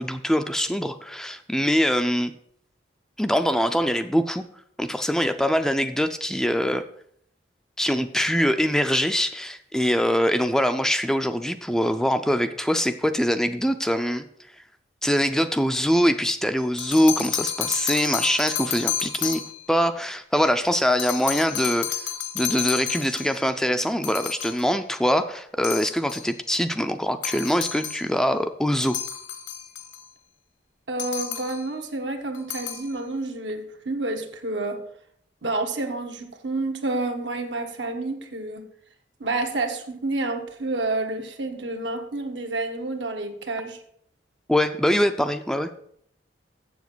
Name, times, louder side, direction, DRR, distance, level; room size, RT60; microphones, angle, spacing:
voice 1, 0.0-2.3 3.2-4.4 4.8-6.8 7.8-14.2 15.0-19.4 19.7-21.9 22.3-29.0 44.5-45.7, equal, 5° left, 9 dB, 0.4 m, -23 dB
sound 1, 16.6-19.7 21.0-23.4 24.0-24.7 25.6-26.3 27.2-28.1 28.8-30.1 31.0-31.7 32.3-32.9, left 9 dB, 75° left, 1.2 m, -31 dB
voice 2, 30.9-34.8 35.4-38.7 39.2-43.8, right 2 dB, 80° right, 5 dB, 1.3 m, -29 dB
7.5 x 7.2 x 6.1 m, 0.67 s
head